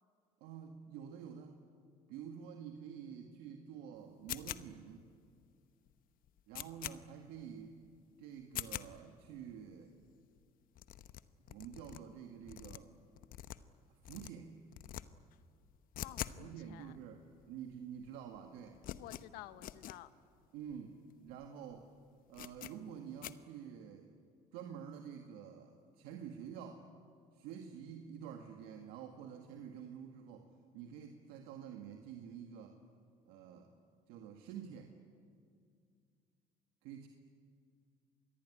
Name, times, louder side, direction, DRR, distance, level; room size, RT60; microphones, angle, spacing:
voice 1, 0.4-1.6 2.1-5.1 6.5-7.8 8.2-9.9 11.5-12.9 13.9-14.6 16.4-17.2 17.5-18.8 20.5-21.9 22.3-24.1 24.5-26.9 27.3-32.8 33.3-33.7 34.1-35.0 36.8-37.1, right 8 dB, 90° right, 4 dB, 1.9 m, -49 dB
sound 1, 4.3-4.9 5.4-5.5 5.9-6.0 6.2-7.0 7.4-7.5 7.8-8.0 8.4-8.9 9.4-9.5 9.7-9.8 10.0-10.1 10.4-10.5 10.7-12.0 12.4-13.8 14.0-14.3 14.7-15.0 15.3-16.4 16.7-16.8 17.4-17.5 17.7-18.1 18.3-20.0 20.4-20.5 20.7-20.8 21.3-21.5 21.7-21.8 22.3-22.7 23.2-23.3, left 13 dB, 65° left, 1.0 m, -45 dB
voice 2, 16.0-17.0 19.0-20.1, left 15 dB, 85° left, 13 dB, 1.2 m, -52 dB
26.5 x 21.0 x 9.9 m, 2.3 s
cardioid pair, 95°, 15 cm